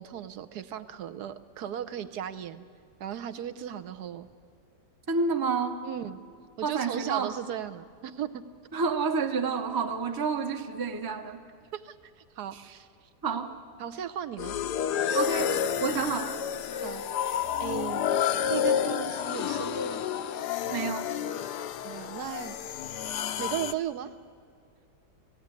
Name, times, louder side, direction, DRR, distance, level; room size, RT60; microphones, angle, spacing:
voice 1, 0.0-2.6 3.0-4.3 5.8-6.2 6.6-8.4 11.7-12.9 13.8-14.6 16.8-18.1 18.4-20.1 21.8-23.0 23.4-24.1, right 10 dB, 70° right, 10 dB, 1.2 m, -36 dB
voice 2, 5.1-5.8 6.6-7.3 8.7-11.4 12.5-12.6 13.2-13.5 15.1-16.3 20.7-21.1, right 5 dB, 20° right, 6 dB, 0.6 m, -29 dB
sound 1, 14.4-23.7, left 9 dB, 80° left, 1.3 m, -30 dB
18.0 x 15.5 x 9.6 m, 2.4 s
omnidirectional pair, 1.8 m